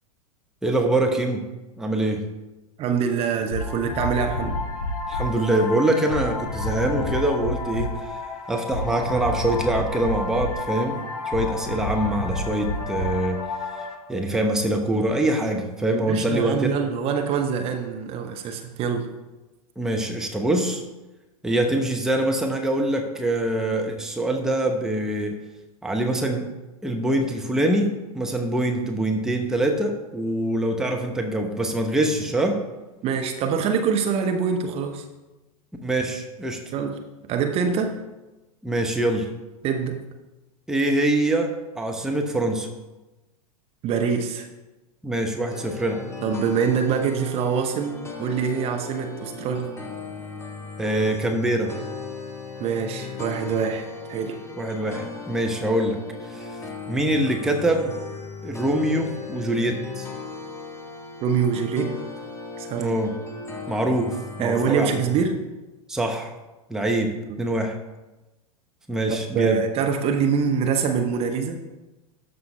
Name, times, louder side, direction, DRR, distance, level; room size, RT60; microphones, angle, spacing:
voice 1, 0.6-1.4 1.8-2.2 5.1-8.2 8.5-13.4 14.1-16.8 19.8-20.8 21.4-25.4 25.8-26.5 26.8-32.6 35.8-36.6 38.6-39.3 40.7-42.7 45.0-46.0 50.8-51.7 54.5-56.0 56.2-56.6 56.9-58.0 58.4-60.1 62.8-63.1 63.7-64.9 65.9-66.3 66.7-67.1 67.4-67.8 68.9-69.6, right 1 dB, 5° right, 2 dB, 0.9 m, -24 dB
voice 2, 2.8-4.6 15.9-19.1 33.0-35.0 36.7-37.9 39.6-40.0 43.8-44.5 46.2-49.7 52.6-54.4 61.2-62.0 62.6-63.0 64.4-65.4 67.3-67.4 69.1-71.6, right 6 dB, 30° right, 4 dB, 0.9 m, -25 dB
sound 1, 3.5-13.9, left 2 dB, 60° left, 2.3 m, -29 dB
sound 2, 45.5-65.2, left 4 dB, 15° left, 1.4 m, -37 dB
13.0 x 5.5 x 3.4 m, 1.1 s
figure-of-eight pair, 95°, 19 cm